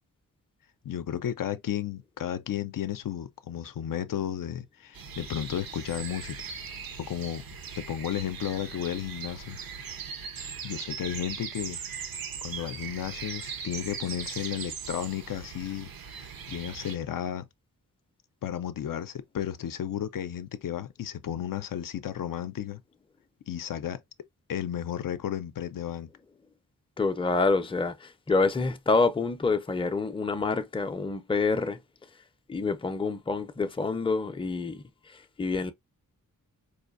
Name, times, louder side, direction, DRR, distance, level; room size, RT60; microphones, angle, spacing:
voice 1, 0.8-6.4 7.0-7.4 7.8-9.6 10.6-17.4 18.4-22.8 23.5-24.0 24.5-26.1, left 10 dB, 70° left, 0.5 m, -33 dB
sound 1, 4.9-17.0, right 6 dB, 85° right, 0.8 m, -39 dB
voice 2, 27.0-31.8 32.5-34.8 35.4-35.7, left 3 dB, 15° left, 0.5 m, -27 dB
4.7 x 2.5 x 2.4 m
wide cardioid pair, 140°, 34 cm